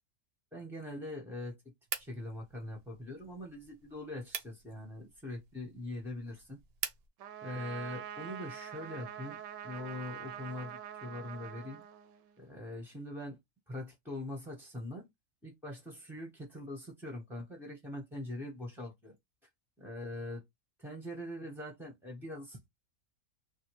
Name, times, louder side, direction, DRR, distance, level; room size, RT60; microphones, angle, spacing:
voice 1, 0.5-1.5 2.0-6.6 7.4-11.8 12.4-13.4 13.7-15.1 15.4-19.1 19.8-20.4 20.8-22.7, left 1 dB, ahead, 0.5 m, -42 dB
sound 1, 1.9-7.1, right 8 dB, 60° right, 0.7 m, -45 dB
Trumpet, 7.2-12.5, right 9 dB, 80° right, 1.0 m, -45 dB
3.3 x 2.5 x 2.9 m
omnidirectional pair, 1.5 m